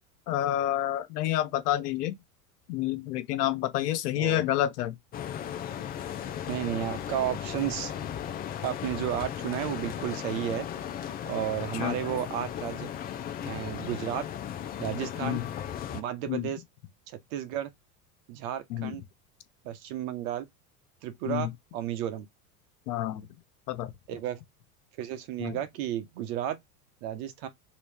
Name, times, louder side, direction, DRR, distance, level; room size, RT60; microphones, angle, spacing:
voice 1, 0.3-2.2 2.7-5.0 11.7-12.0 15.2-15.5 16.3-16.5 18.7-18.9 21.3-21.5 22.9-23.3 23.7-23.9 25.4-25.6, left 13 dB, 85° left, 0.9 m, -29 dB
sound 1, 5.1-16.0, left 9 dB, 20° left, 0.3 m, -36 dB
voice 2, 6.5-7.9 8.6-10.6 11.3-12.9 13.5-14.3 14.8-15.4 15.9-16.6 17.1-17.7 18.3-19.0 19.6-20.4 21.0-21.5 21.7-22.3 24.1-24.4 25.0-26.6 27.0-27.5, right 11 dB, 65° right, 1.1 m, -32 dB
3.1 x 3.0 x 3.4 m
supercardioid pair, 110°, 46 cm